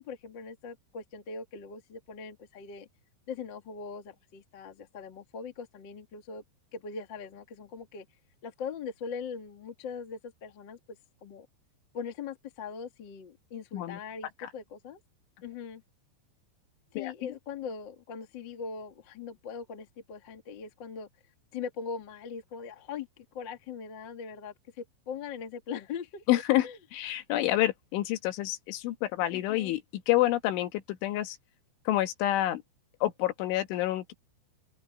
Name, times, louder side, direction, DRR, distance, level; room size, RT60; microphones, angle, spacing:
voice 1, 0.0-2.9 3.3-6.4 6.7-8.0 8.4-11.5 11.9-15.0 15.4-15.8 16.9-21.1 21.5-26.2 26.6-26.8 29.3-29.7, left 6 dB, 60° left, 1.1 m, -41 dB
voice 2, 26.3-31.4 31.9-32.6 33.0-34.1, left 15 dB, 80° left, 3.8 m, -28 dB
open air
omnidirectional pair, 5.4 m